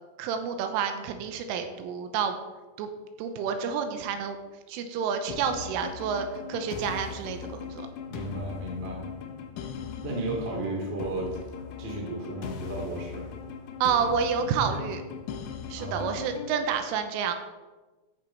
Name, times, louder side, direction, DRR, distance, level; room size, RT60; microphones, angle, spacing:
voice 1, 0.2-2.4 2.8-2.9 3.2-4.4 4.7-7.9 13.8-15.0 15.7-17.3, right 6 dB, 85° right, 7 dB, 3.3 m, -29 dB
sound 1, 5.3-16.7, left 7 dB, 85° left, 3.5 m, -39 dB
voice 2, 8.1-9.0 10.0-11.4 11.8-13.3 15.8-16.2, right 2 dB, 35° right, -1 dB, 0.9 m, -34 dB
14.0 x 7.1 x 4.5 m, 1.2 s
omnidirectional pair, 5.9 m